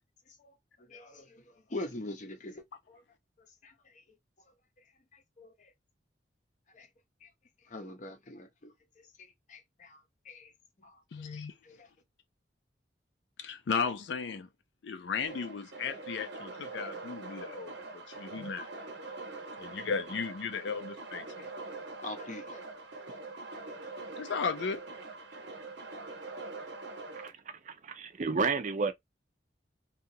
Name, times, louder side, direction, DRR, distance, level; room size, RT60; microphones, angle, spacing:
voice 1, 0.3-3.0 3.6-4.0 5.1-5.7 6.7-6.9 7.2-7.3 7.6-10.5 10.8-11.9 21.4-21.5 22.0-22.7, left 2 dB, 45° left, 0.7 m, -45 dB
voice 2, 11.1-11.5 13.4-14.5 14.8-18.7 19.6-21.3 24.2-24.8, left 5 dB, 80° left, 0.4 m, -35 dB
sound 1, 15.3-27.3, right 3 dB, 80° right, 0.9 m, -44 dB
voice 3, 27.7-28.9, right 4 dB, 45° right, 0.5 m, -31 dB
2.8 x 2.3 x 2.6 m
head